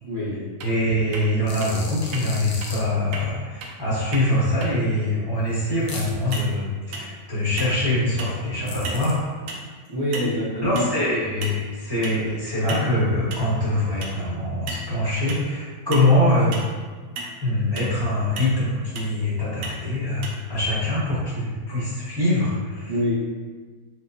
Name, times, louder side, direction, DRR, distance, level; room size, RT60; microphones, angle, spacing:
voice 1, 0.0-0.4 9.9-10.8 11.4-11.5 22.9-23.1, equal, 35° right, -10 dB, 0.6 m, -26 dB
voice 2, 0.6-9.3 10.6-16.6 17.4-22.9, left 1 dB, 15° left, -10 dB, 0.9 m, -23 dB
sound 1, 0.6-0.7 1.1-1.3 1.6-1.7 2.1-2.2 2.6-2.7 3.1-3.2 3.6-3.7 4.1-4.3 4.6-4.7 6.3-6.5 6.9-7.2 7.6-7.8 8.2-8.4 8.8-9.1 9.5-9.6 10.1-10.4 10.8-10.9 11.4-11.7 12.0-12.2 12.7-12.9 13.3-13.5 14.0-14.2 14.7-14.8 15.3-15.5 15.9-16.1 16.5-16.7 17.2-17.3 17.8-17.9 18.4-18.6 19.0-19.1 19.6-19.8 20.2-20.3, right 2 dB, 70° right, 0.8 m, -34 dB
sound 2, 1.5-2.8 5.9-6.4 8.7-9.1, left 4 dB, 75° left, 1.1 m, -37 dB
4.3 x 2.1 x 2.6 m, 1.4 s
omnidirectional pair, 1.8 m